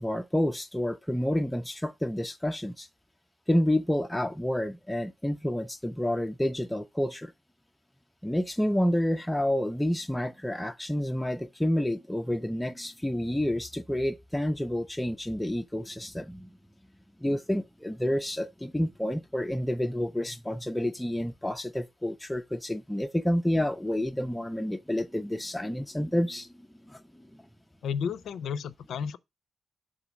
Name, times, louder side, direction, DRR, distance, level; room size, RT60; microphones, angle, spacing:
voice 1, 0.0-2.9 3.5-7.3 8.2-16.5 17.2-27.3, left 1 dB, 5° left, 0.4 m, -29 dB
voice 2, 27.8-29.2, left 7 dB, 85° left, 0.4 m, -32 dB
7.0 x 3.8 x 6.1 m
cardioid pair, 100°, 0 cm